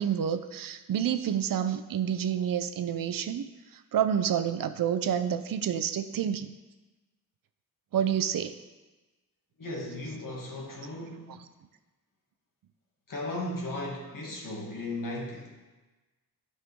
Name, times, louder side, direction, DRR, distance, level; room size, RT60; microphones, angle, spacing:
voice 1, 0.0-3.4 3.9-6.5 7.9-8.5 11.3-11.4, right 9 dB, 65° right, 10 dB, 0.6 m, -28 dB
voice 2, 9.6-11.3 13.1-15.5, left 1 dB, 60° left, -2 dB, 2.2 m, -36 dB
11.5 x 5.5 x 3.6 m, 1.2 s
cardioid pair, 75°, 37 cm